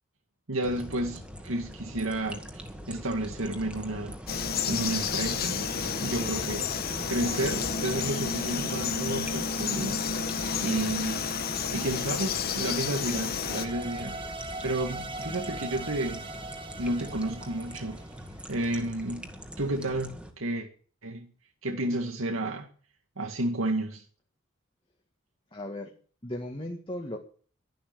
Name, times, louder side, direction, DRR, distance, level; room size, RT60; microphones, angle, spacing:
voice 1, 0.5-4.1 4.7-6.7 7.1-10.0 10.6-11.2 11.7-14.2 14.6-16.2 16.8-18.0 18.5-19.3 19.6-20.7 21.0-21.3 21.6-22.7 23.2-24.0, right 1 dB, 85° right, 2.0 m, -31 dB
sound 1, 0.6-20.3, equal, 5° right, 2.0 m, -42 dB
Frog, 4.3-13.7, left 6 dB, 50° left, 1.5 m, -31 dB
sound 2, 13.4-18.6, right 2 dB, 25° right, 2.1 m, -40 dB
voice 2, 25.5-25.9 26.2-27.2, left 1 dB, 25° left, 2.0 m, -36 dB
12.0 x 11.5 x 6.9 m
head